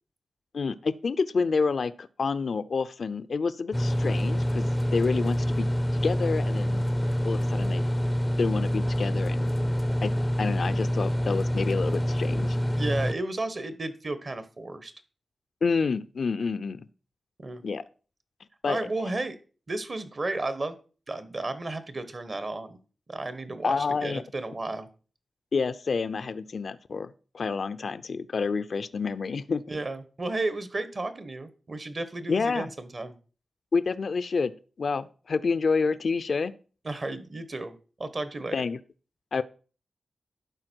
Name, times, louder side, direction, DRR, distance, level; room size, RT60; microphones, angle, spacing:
voice 1, 0.5-5.7 6.0-6.9 7.2-7.8 8.4-9.7 10.0-10.1 10.4-12.6 15.6-16.9 17.6-17.8 18.6-18.8 19.1-19.2 23.6-24.2 25.5-29.6 32.3-32.7 33.7-34.5 34.8-36.5 38.5-38.8 39.3-39.4, left 4 dB, 70° left, 13 dB, 0.4 m, -28 dB
sound 1, 3.7-13.1, equal, 10° left, 0.5 m, -26 dB
voice 2, 12.7-14.9 17.4-17.6 18.7-19.3 19.7-20.7 21.1-22.8 23.1-24.9 29.7-33.2 36.8-38.6, right 2 dB, 50° right, 12 dB, 1.2 m, -33 dB
11.5 x 4.5 x 4.5 m, 0.37 s
cardioid pair, 50°, 0 cm